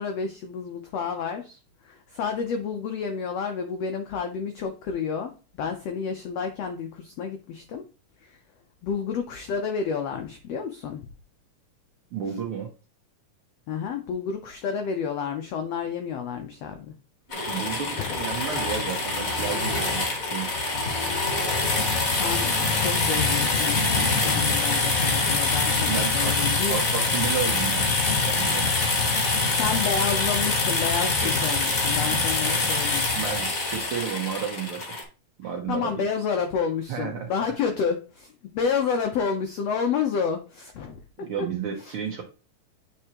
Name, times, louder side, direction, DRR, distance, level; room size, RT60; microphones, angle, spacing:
voice 1, 0.0-7.8 8.2-8.4 8.8-11.0 13.7-16.9 18.0-18.2 22.2-26.8 29.5-33.0 35.7-41.5 41.8-41.9, left 6 dB, 85° left, 5 dB, 1.4 m, -30 dB
voice 2, 12.1-12.7 17.3-20.7 25.5-26.4 26.7-28.6 31.2-31.3 32.5-32.7 33.1-34.8 35.4-36.0 36.9-37.3 41.2-42.2, right 8 dB, 70° right, 1 dB, 1.3 m, -32 dB
sound 1, 17.3-35.0, left 3 dB, 40° left, 1.2 m, -24 dB
8.4 x 4.5 x 2.9 m, 0.34 s
omnidirectional pair, 3.9 m